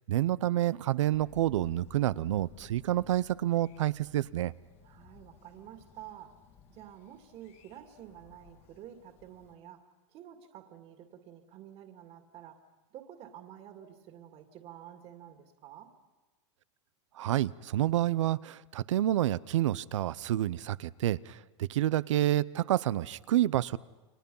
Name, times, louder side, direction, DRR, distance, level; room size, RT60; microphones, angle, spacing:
voice 1, 0.1-4.5 17.2-23.8, right 13 dB, 85° right, 0.7 m, -28 dB
Thunder, 1.1-9.5, left 7 dB, 40° left, 2.2 m, -57 dB
voice 2, 4.8-6.4 6.7-9.9 10.1-12.6 12.9-15.9, right 10 dB, 40° right, 2.3 m, -50 dB
30.0 x 23.5 x 5.5 m
supercardioid pair, 135°, 15 cm